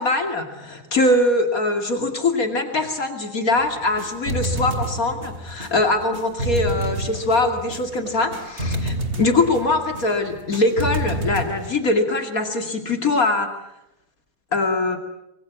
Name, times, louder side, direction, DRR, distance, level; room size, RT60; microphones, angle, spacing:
voice 1, 0.0-13.5 14.5-15.0, left 2 dB, 55° left, 5 dB, 2.9 m, -22 dB
sound 1, 3.6-11.7, right 1 dB, 40° right, 2.9 m, -29 dB
25.0 x 23.5 x 8.4 m, 0.83 s
omnidirectional pair, 1.7 m